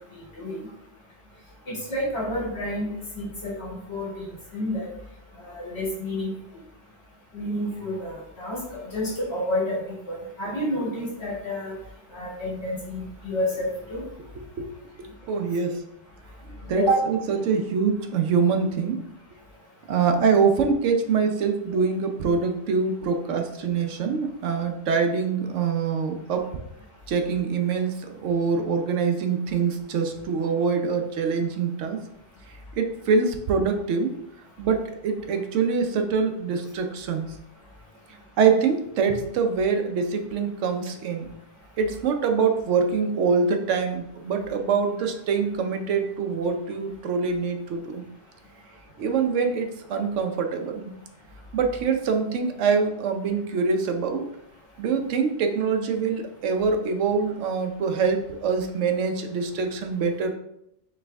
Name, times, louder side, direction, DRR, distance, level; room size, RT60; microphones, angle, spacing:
voice 1, 0.1-0.6 1.7-4.3 4.5-4.9 5.4-6.3 7.3-11.7 12.1-14.0 16.8-17.0, equal, 60° left, -5 dB, 2.2 m, -29 dB
voice 2, 15.2-15.8 16.7-19.0 19.9-26.5 27.1-32.0 32.8-34.1 34.6-37.3 38.4-41.3 41.8-48.0 49.0-51.0 51.5-54.3 54.8-60.3, right 5 dB, 85° right, 5 dB, 1.0 m, -24 dB
4.5 x 3.3 x 3.4 m, 0.81 s
omnidirectional pair, 1.2 m